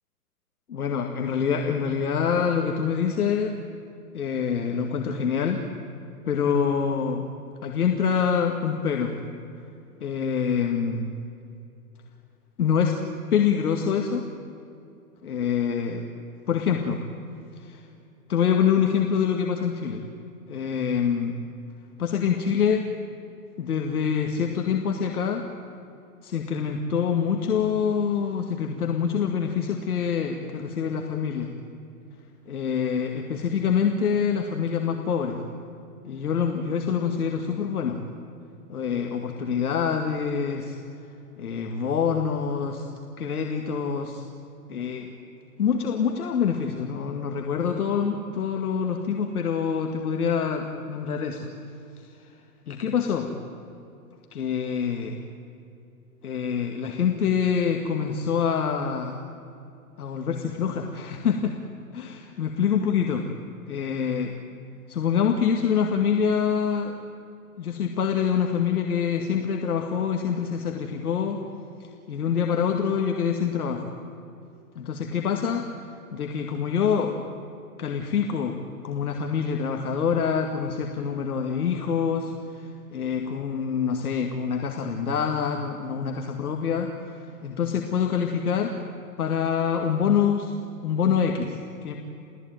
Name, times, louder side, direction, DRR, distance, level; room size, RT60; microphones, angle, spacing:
voice 1, 0.7-3.6 4.1-5.6 6.3-7.2 7.6-9.2 10.0-11.1 12.6-13.0 13.3-14.3 15.2-16.1 16.5-17.0 17.6-17.8 18.3-20.0 20.5-21.4 22.0-22.9 23.6-25.5 26.2-31.5 32.5-35.4 36.0-38.0 38.7-40.8 41.4-42.9 43.2-44.2 44.7-45.1 45.6-51.5 52.0-52.1 52.7-53.3 54.3-55.2 56.2-59.2 60.0-61.6 61.9-63.3 63.7-64.3 64.9-66.9 67.6-71.4 71.8-73.9 74.8-75.7 76.1-77.2 77.8-78.6 78.8-88.8 89.2-90.5 90.8-91.9, left 7 dB, 70° left, 3 dB, 2.2 m, -25 dB
29.0 x 16.5 x 9.2 m, 2.7 s
hypercardioid pair, 180°, 47 cm